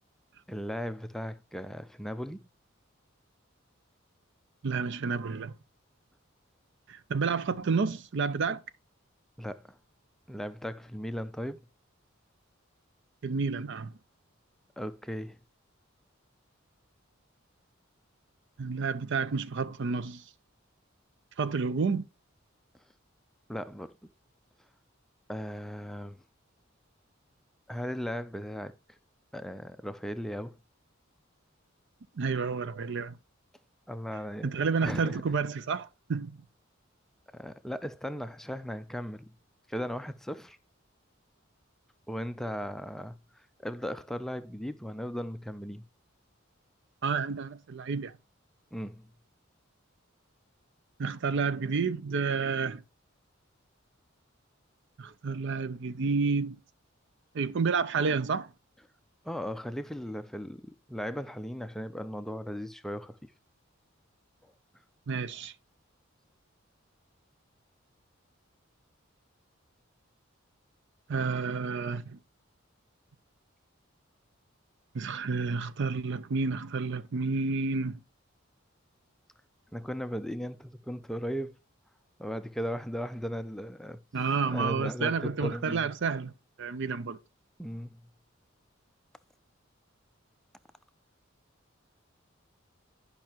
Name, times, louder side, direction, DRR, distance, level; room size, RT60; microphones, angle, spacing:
voice 1, 0.5-2.4 9.4-9.8 10.3-11.7 14.8-15.4 23.5-24.0 25.3-26.2 27.7-29.0 29.3-30.6 33.9-34.6 34.8-35.2 37.3-39.3 39.7-40.6 42.1-43.1 43.6-45.8 48.7-49.1 59.2-63.3 64.4-64.5 79.7-81.6 82.2-84.0 84.5-85.9 87.6-88.0, equal, ahead, 0.4 m, -37 dB
voice 2, 4.6-5.5 6.9-8.6 13.2-13.9 18.6-20.2 21.4-22.0 32.2-33.2 34.4-36.4 47.0-48.1 51.0-52.8 55.0-56.6 57.3-58.5 65.1-65.5 71.1-72.2 74.9-78.0 84.1-87.2, right 5 dB, 60° right, 0.5 m, -30 dB
10.5 x 5.5 x 2.9 m
head